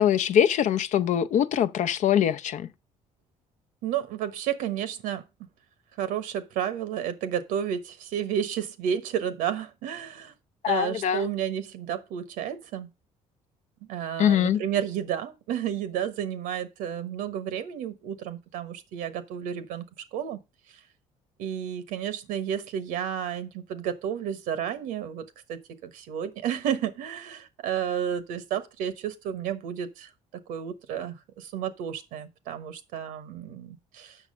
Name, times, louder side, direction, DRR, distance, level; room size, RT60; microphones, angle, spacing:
voice 1, 0.0-2.7 10.6-11.2 14.2-14.6, left 9 dB, 65° left, 0.7 m, -23 dB
voice 2, 3.8-5.2 6.0-10.3 10.7-12.9 13.9-19.8 20.1-20.4 21.4-30.1 30.5-34.2, right 9 dB, 90° right, 1.2 m, -31 dB
7.3 x 6.1 x 5.4 m
cardioid pair, 100°, 14 cm